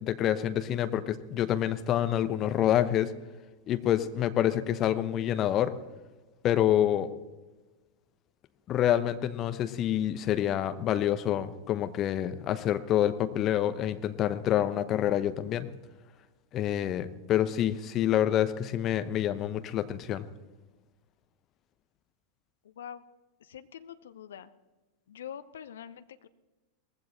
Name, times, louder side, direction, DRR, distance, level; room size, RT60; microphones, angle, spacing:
voice 1, 0.0-3.1 3.7-5.7 6.4-7.1 8.7-15.7 16.5-20.3, left 11 dB, 30° left, 11 dB, 0.9 m, -27 dB
voice 2, 22.6-23.0 23.4-24.5 25.1-26.3, left 9 dB, 65° left, 12 dB, 0.8 m, -44 dB
19.0 x 15.5 x 4.2 m, 1.2 s
figure-of-eight pair, 90°, 0 cm